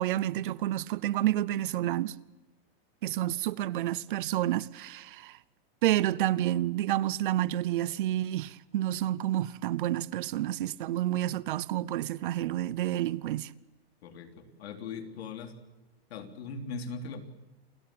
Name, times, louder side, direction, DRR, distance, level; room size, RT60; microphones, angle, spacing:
voice 1, 0.0-2.2 3.0-5.4 5.8-13.5, right 13 dB, 55° right, 0.8 m, -29 dB
voice 2, 14.0-15.5 16.1-17.2, left 4 dB, 80° left, 3.6 m, -40 dB
28.5 x 17.0 x 8.7 m
supercardioid pair, 180°, 31 cm